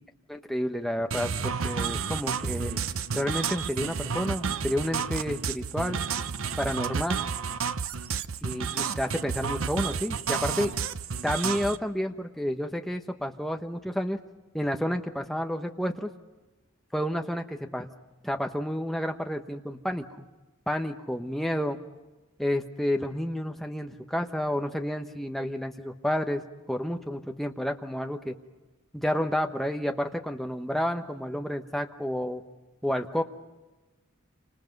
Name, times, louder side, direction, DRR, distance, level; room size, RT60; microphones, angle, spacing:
voice 1, 0.3-2.8 3.1-6.0 6.6-7.2 8.4-10.7 11.2-14.2 14.5-16.1 16.9-17.9 18.2-20.0 20.7-21.8 22.4-26.4 26.7-28.3 28.9-32.4 32.8-33.2, equal, ahead, 4 dB, 1.1 m, -30 dB
sound 1, 1.1-11.8, right 6 dB, 80° right, 0.7 m, -31 dB
29.0 x 26.0 x 5.4 m, 1.2 s
head